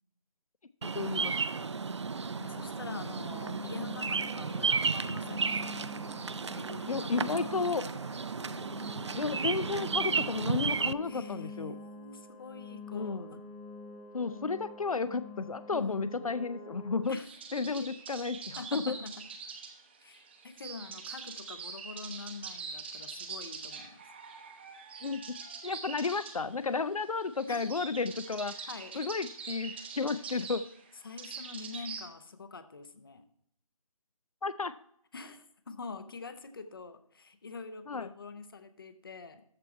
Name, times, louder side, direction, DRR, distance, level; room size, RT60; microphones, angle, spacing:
voice 1, 0.8-1.4 6.9-7.8 9.2-11.7 12.9-13.4 14.1-17.2 17.5-19.0 25.0-28.7 29.0-30.7 34.4-34.7 37.9-38.1, left 4 dB, 80° left, 14 dB, 0.5 m, -33 dB
Bird vocalization bird call bird song, 0.8-10.9, right 5 dB, 55° right, 0.4 m, -33 dB
voice 2, 2.4-5.8 6.4-8.2 11.0-13.3 15.7-16.3 17.1-17.3 17.7-17.9 18.6-19.1 20.0-24.0 27.5-27.7 28.7-29.0 31.0-33.3 35.1-39.4, left 4 dB, 40° left, 11 dB, 0.8 m, -45 dB
sound 1, 2.4-17.0, left 4 dB, 10° left, 1.0 m, -48 dB
sound 2, 17.0-32.1, right 5 dB, 20° right, 0.8 m, -44 dB
13.5 x 4.6 x 4.2 m, 0.71 s
figure-of-eight pair, 160°, 18 cm